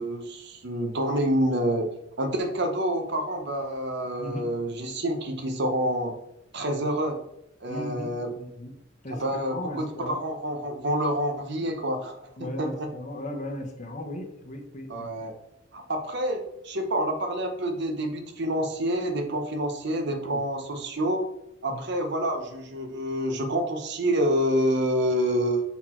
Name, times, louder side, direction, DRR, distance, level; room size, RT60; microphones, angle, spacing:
voice 1, 0.0-1.9 2.2-6.1 6.5-7.2 7.6-8.3 9.1-12.9 14.9-15.3 15.7-21.2 21.6-25.6, equal, 55° right, 5 dB, 0.9 m, -27 dB
voice 2, 7.7-8.7 9.0-9.2 9.5-10.2 12.4-14.9 21.7-21.8, left 1 dB, 35° left, 3 dB, 0.9 m, -36 dB
5.9 x 4.3 x 4.4 m, 0.81 s
head